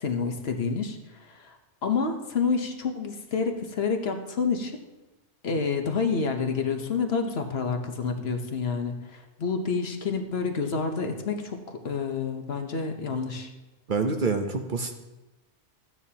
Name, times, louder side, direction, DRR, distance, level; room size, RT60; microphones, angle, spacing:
voice 1, 0.0-4.7 5.4-13.5, left 5 dB, 60° left, 5 dB, 1.2 m, -29 dB
voice 2, 13.9-15.0, right 4 dB, 50° right, 5 dB, 0.9 m, -27 dB
14.5 x 9.2 x 2.8 m, 1.1 s
omnidirectional pair, 1.2 m